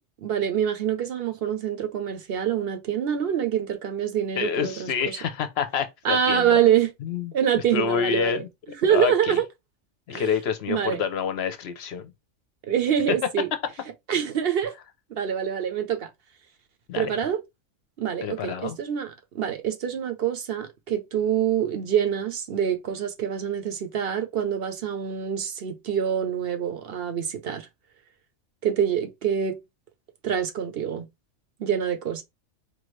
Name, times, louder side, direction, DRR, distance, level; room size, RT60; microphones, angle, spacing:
voice 1, 0.2-5.2 6.0-6.9 7.3-8.4 8.8-9.4 10.1-10.2 10.7-11.0 12.7-13.5 14.1-14.7 15.1-16.1 16.9-17.4 18.0-27.7 28.6-29.6 30.2-31.1 31.6-32.2, right 9 dB, 55° right, 0.9 m, -25 dB
voice 2, 4.4-6.6 7.0-8.5 8.9-9.4 10.1-12.1 13.1-13.2 16.9-17.2 18.2-18.8, left 7 dB, 60° left, 0.8 m, -28 dB
4.6 x 2.5 x 3.1 m
omnidirectional pair, 1.3 m